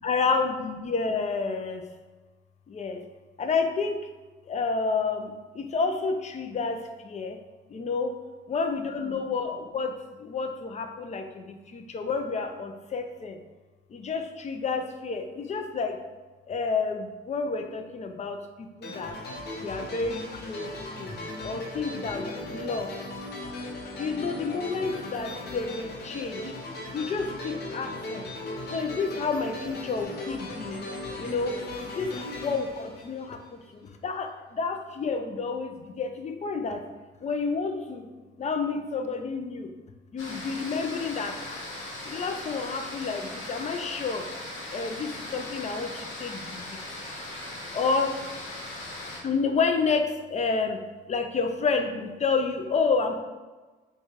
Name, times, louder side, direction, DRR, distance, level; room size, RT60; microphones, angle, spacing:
voice 1, 0.0-1.9 2.7-3.0 3.4-4.0 4.4-7.4 7.7-8.2 8.5-13.4 13.9-16.0 16.5-19.2 19.6-21.1 21.4-22.9 24.0-26.5 26.9-28.3 28.7-30.9 31.2-36.8 37.2-38.1 38.4-39.7 40.1-41.6 42.1-44.3 44.7-46.8 47.7-48.1 49.2-50.8 51.1-53.2, left 4 dB, 35° left, 6 dB, 0.4 m, -30 dB
sound 1, 18.8-33.7, left 1 dB, 55° left, 0.7 m, -38 dB
sound 2, 40.2-49.2, left 1 dB, 80° left, 1.0 m, -39 dB
4.6 x 2.3 x 2.8 m, 1.2 s
cardioid pair, 90°, 20 cm